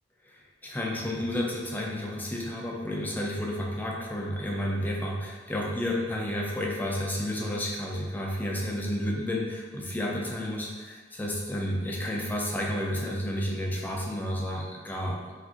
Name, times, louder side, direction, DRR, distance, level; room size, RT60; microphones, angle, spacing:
voice 1, 0.3-15.3, left 1 dB, 10° left, -2 dB, 0.4 m, -31 dB
3.6 x 2.4 x 2.4 m, 1.4 s
head